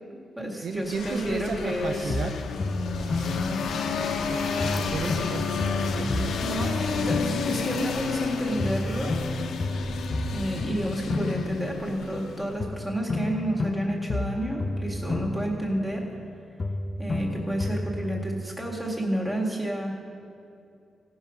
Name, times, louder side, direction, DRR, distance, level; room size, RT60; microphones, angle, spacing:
voice 1, 0.1-2.1 6.4-9.1 10.3-16.1 17.0-20.0, right 1 dB, 10° right, -2 dB, 1.8 m, -30 dB
voice 2, 0.6-2.4 3.0-3.6 4.3-6.4, right 5 dB, 60° right, 5 dB, 0.5 m, -35 dB
sound 1, 0.9-12.6, left 5 dB, 75° left, 0.8 m, -31 dB
sound 2, 2.1-4.2 4.6-8.3 8.6-12.3 12.6-16.3 16.6-18.2, left 2 dB, 35° left, 0.5 m, -32 dB
16.5 x 5.8 x 5.5 m, 2.6 s
cardioid pair, 125°, 0 cm